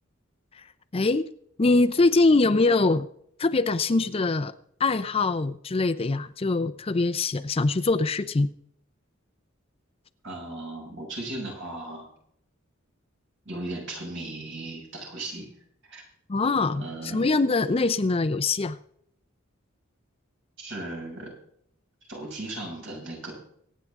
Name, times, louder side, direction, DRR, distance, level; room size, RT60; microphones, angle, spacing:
voice 1, 0.9-1.3 1.6-3.1 3.4-4.5 4.8-8.5 16.3-18.8, left 3 dB, 30° left, 12 dB, 0.5 m, -23 dB
voice 2, 10.2-12.1 13.4-15.5 15.9-16.0 16.8-17.2 20.6-21.4 22.1-23.3, right 2 dB, 60° right, -1 dB, 6.2 m, -36 dB
23.5 x 9.4 x 3.6 m, 0.68 s
head